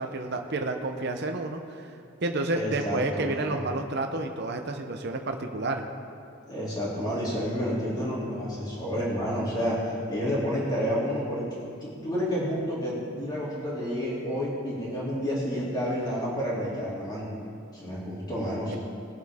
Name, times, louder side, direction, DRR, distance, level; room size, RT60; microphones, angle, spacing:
voice 1, 0.0-1.9 2.2-5.8, right 2 dB, 50° right, 4 dB, 0.8 m, -30 dB
voice 2, 2.5-3.6 6.5-11.5 11.8-17.3 17.7-18.8, equal, 20° left, -7 dB, 3.0 m, -30 dB
20.5 x 7.7 x 3.7 m, 2.4 s
head